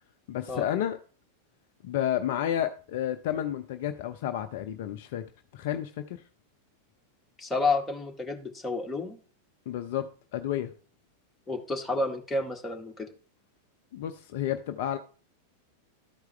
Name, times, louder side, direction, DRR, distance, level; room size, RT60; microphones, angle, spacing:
voice 1, 0.3-1.0 1.8-5.2 5.5-6.2 9.7-10.7 13.9-15.0, left 11 dB, 50° left, 0.5 m, -31 dB
voice 2, 7.4-9.2 11.5-13.1, left 3 dB, 10° left, 1.7 m, -30 dB
13.0 x 4.6 x 3.4 m
figure-of-eight pair, 90°, 0 cm